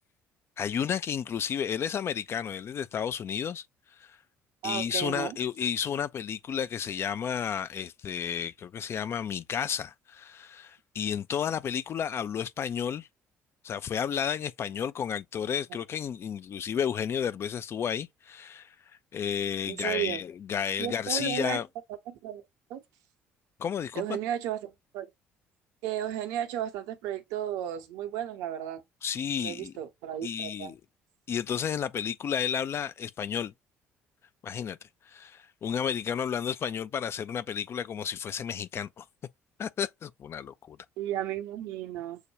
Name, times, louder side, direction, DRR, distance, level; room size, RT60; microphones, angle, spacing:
voice 1, 0.6-3.6 4.0-4.2 4.6-13.1 13.6-18.8 19.1-21.7 23.6-24.2 29.0-29.7 30.2-30.8 31.3-33.5 34.4-34.8 35.1-39.1 39.6-40.8, left 8 dB, 40° left, 0.4 m, -32 dB
voice 2, 4.6-5.4 19.7-20.2 20.8-21.6 22.1-22.4 22.7-22.8 24.0-25.1 25.8-28.8 29.4-30.7 41.0-42.2, right 11 dB, 60° right, 0.7 m, -34 dB
6.3 x 2.2 x 3.2 m
figure-of-eight pair, 50°, 7 cm